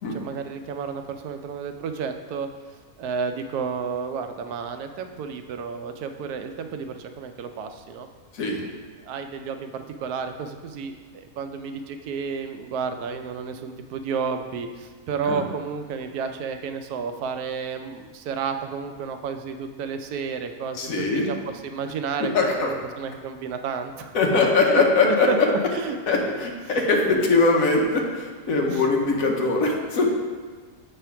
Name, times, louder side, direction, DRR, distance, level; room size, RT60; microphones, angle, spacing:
voice 1, 0.1-2.5 3.0-8.1 9.1-10.9 11.4-24.2 24.6-26.0 28.7-28.8, right 5 dB, 90° right, 7 dB, 1.1 m, -31 dB
voice 2, 8.3-8.6 15.2-15.5 20.7-21.3 22.2-22.7 24.1-25.3 26.1-30.1, left 3 dB, 65° left, 0 dB, 1.3 m, -21 dB
7.0 x 3.3 x 5.6 m, 1.5 s
omnidirectional pair, 1.6 m